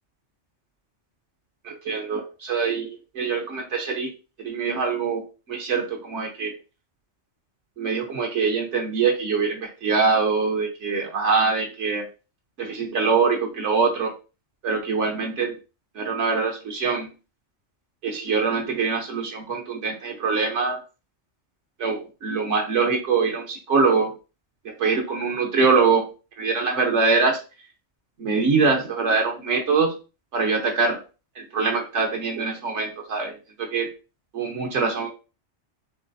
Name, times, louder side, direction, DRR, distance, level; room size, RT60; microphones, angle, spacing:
voice 1, 1.6-2.9 3.1-4.1 4.4-5.2 5.5-6.5 7.8-12.1 12.6-14.1 14.6-15.5 15.9-17.1 18.0-20.8 21.8-24.1 24.8-26.1 26.4-27.4 28.2-29.9 30.3-31.0 31.4-33.3 33.6-33.9 34.3-35.1, right 4 dB, 80° right, 0 dB, 1.2 m, -23 dB
7.2 x 2.5 x 2.6 m, 0.32 s
omnidirectional pair, 1.2 m